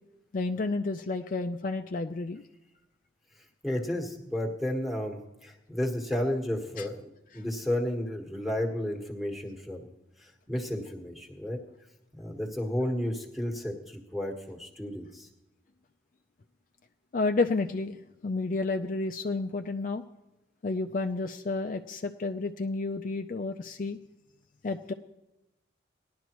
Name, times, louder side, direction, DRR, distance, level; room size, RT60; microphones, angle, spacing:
voice 1, 0.3-2.4 6.8-6.9 17.1-18.0 18.2-20.0 20.6-24.0 24.6-24.9, left 3 dB, 45° left, 6 dB, 0.4 m, -30 dB
voice 2, 3.6-9.9 10.2-11.6 12.1-15.3, left 1 dB, ahead, 0 dB, 1.3 m, -32 dB
18.5 x 11.0 x 3.0 m, 0.96 s
head